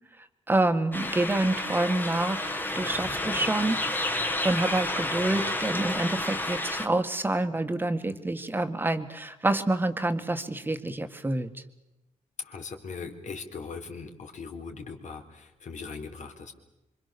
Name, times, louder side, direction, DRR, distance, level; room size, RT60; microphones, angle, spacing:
voice 1, 0.2-4.2 4.4-11.5, right 2 dB, 15° right, 7 dB, 1.9 m, -28 dB
sound 1, 0.9-6.9, left 1 dB, 15° left, 1.9 m, -30 dB
voice 2, 12.4-16.5, left 5 dB, 65° left, 5 dB, 3.9 m, -40 dB
26.5 x 26.0 x 7.0 m, 0.95 s
wide cardioid pair, 150°, 13 cm